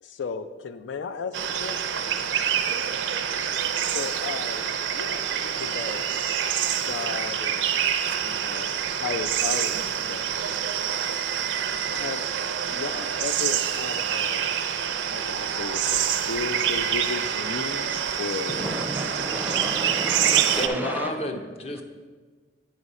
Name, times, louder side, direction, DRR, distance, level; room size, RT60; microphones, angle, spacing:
voice 1, 0.0-2.0 3.9-4.7 4.9-6.0 6.8-7.8 8.2-10.3 11.9-12.2 12.7-14.5 15.1-18.6, left 5 dB, 90° left, 11 dB, 0.4 m, -35 dB
sound 1, 1.3-20.7, right 8 dB, 80° right, 0.4 m, -26 dB
voice 2, 18.5-21.3 21.7-21.8, right 1 dB, 10° right, 5 dB, 0.5 m, -32 dB
voice 3, 20.6-21.8, left 1 dB, 35° left, 6 dB, 0.6 m, -30 dB
9.0 x 5.0 x 4.1 m, 1.4 s
head